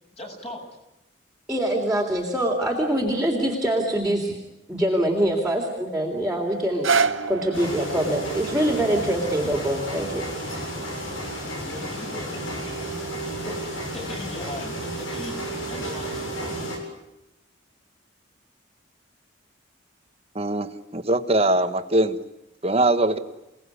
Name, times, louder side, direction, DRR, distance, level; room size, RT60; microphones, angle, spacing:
voice 1, 0.2-0.6 3.1-3.2 11.6-12.4 13.5-13.6 13.9-15.4 15.7-16.7, left 1 dB, 30° left, 1 dB, 7.5 m, -38 dB
voice 2, 1.5-4.3 4.7-6.9 7.3-10.2, right 1 dB, 5° right, -2 dB, 3.4 m, -24 dB
sound 1, 6.6-12.7 13.3-13.4, right 5 dB, 80° right, 1.7 m, -30 dB
sound 2, 7.5-16.8, right 1 dB, 80° left, 7.7 m, -32 dB
voice 3, 20.3-22.2 22.6-23.2, right 2 dB, 30° right, 9 dB, 1.4 m, -22 dB
28.5 x 18.5 x 9.8 m, 0.92 s
head